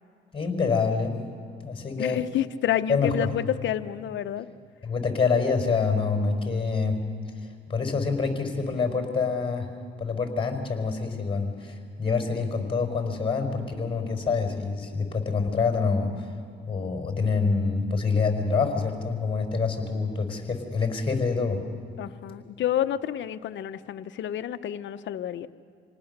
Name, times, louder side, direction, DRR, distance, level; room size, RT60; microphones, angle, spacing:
voice 1, 0.3-1.1 1.6-2.2 2.9-3.3 4.8-7.0 7.7-9.7 10.0-16.3 16.7-21.6, left 4 dB, 25° left, 3 dB, 4.6 m, -26 dB
voice 2, 2.0-4.5 22.0-25.5, left 11 dB, 70° left, 12 dB, 0.8 m, -29 dB
27.0 x 19.0 x 6.7 m, 2.4 s
cardioid pair, 90°, 20 cm